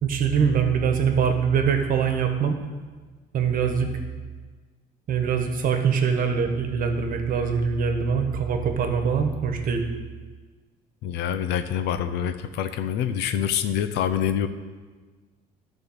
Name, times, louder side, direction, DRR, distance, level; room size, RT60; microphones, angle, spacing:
voice 1, 0.0-2.6 3.3-3.9 5.1-9.8, right 6 dB, 55° right, 5 dB, 1.3 m, -23 dB
voice 2, 11.0-14.5, left 9 dB, 85° left, 10 dB, 0.7 m, -26 dB
12.0 x 4.6 x 6.5 m, 1.4 s
cardioid pair, 110°, 17 cm